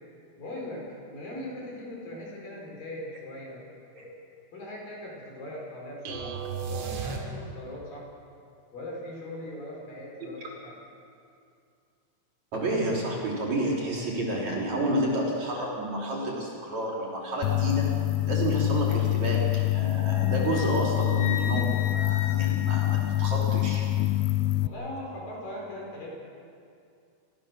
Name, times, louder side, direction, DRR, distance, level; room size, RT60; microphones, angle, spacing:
voice 1, 0.4-3.6 4.5-8.1 8.7-10.8 24.6-26.1, left 1 dB, 45° left, -3 dB, 6.2 m, -40 dB
sound 1, 6.1-7.8, right 5 dB, 85° right, 4.8 m, -34 dB
voice 2, 12.5-17.9 18.3-23.8, right 1 dB, 40° right, -3 dB, 4.2 m, -30 dB
sound 2, 17.4-24.7, left 18 dB, 90° left, 3.2 m, -26 dB
Wind instrument woodwind instrument, 20.1-23.6, left 9 dB, 75° left, 2.2 m, -38 dB
29.5 x 14.5 x 6.8 m, 2.4 s
omnidirectional pair, 5.6 m